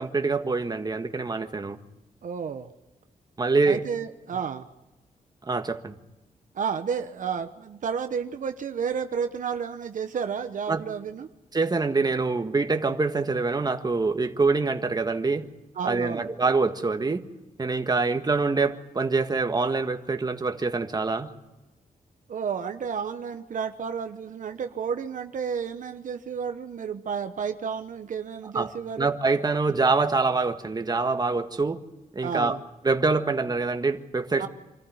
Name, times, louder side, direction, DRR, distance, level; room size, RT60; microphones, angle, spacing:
voice 1, 0.0-1.8 3.4-3.8 5.4-6.0 10.7-10.8 11.5-15.5 15.8-17.2 17.6-21.3 28.5-28.7 29.0-31.8 32.1-32.6 32.8-34.5, right 3 dB, 30° right, 7 dB, 1.6 m, -25 dB
voice 2, 2.2-2.7 3.7-4.7 6.5-11.3 15.8-16.3 22.3-29.1 32.2-32.6 34.4-34.5, right 7 dB, 70° right, 8 dB, 1.1 m, -31 dB
25.5 x 14.5 x 9.4 m, 1.1 s
cardioid pair, 85°, 14 cm